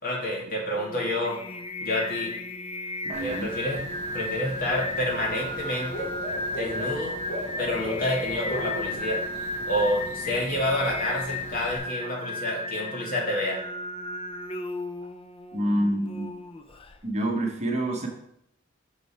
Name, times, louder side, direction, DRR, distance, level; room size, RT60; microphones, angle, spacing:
voice 1, 0.0-1.4 1.8-2.3 3.1-3.8 4.1-6.1 6.5-7.2 7.6-9.2 9.6-13.6, left 1 dB, 45° left, -3 dB, 2.2 m, -28 dB
Singing, 0.7-17.0, left 2 dB, 30° left, 0.5 m, -35 dB
voice 2, 3.0-3.5 15.5-16.3 17.0-18.1, right 1 dB, 35° right, 1 dB, 1.1 m, -27 dB
Bird / Cricket, 3.1-11.8, equal, 60° left, 2.4 m, -38 dB
6.5 x 5.3 x 4.4 m, 0.75 s
head